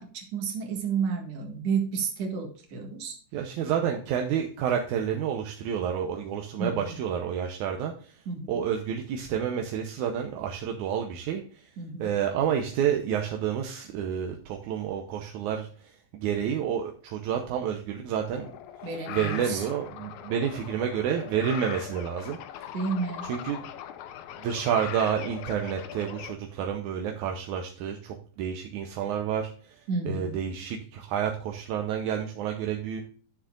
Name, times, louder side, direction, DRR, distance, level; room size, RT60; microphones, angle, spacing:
voice 1, 0.0-3.2 6.6-7.0 8.3-8.6 11.8-12.1 18.8-19.6 22.7-23.3 29.9-30.4, right 5 dB, 55° right, 2 dB, 2.6 m, -31 dB
voice 2, 3.3-7.9 8.5-11.4 12.0-15.7 16.1-18.5 19.1-22.4 23.3-23.6 24.4-29.5 30.1-33.0, right 8 dB, 75° right, 3 dB, 2.0 m, -29 dB
sound 1, 18.3-26.3, left 10 dB, 75° left, 1.9 m, -40 dB
11.5 x 7.2 x 2.5 m, 0.43 s
omnidirectional pair, 4.0 m